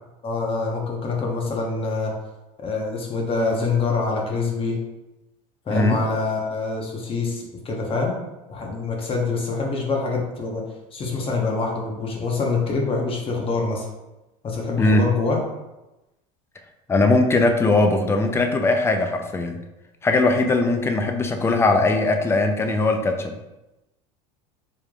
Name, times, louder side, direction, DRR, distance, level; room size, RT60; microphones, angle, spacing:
voice 1, 0.2-2.1 2.6-4.8 5.7-8.2 8.5-10.6 10.9-13.9 14.4-15.4, left 4 dB, 30° left, 0 dB, 1.0 m, -25 dB
voice 2, 16.9-19.6 20.0-23.4, left 2 dB, 15° left, 5 dB, 0.4 m, -20 dB
4.8 x 3.4 x 2.4 m, 0.99 s
supercardioid pair, 120°, 18 cm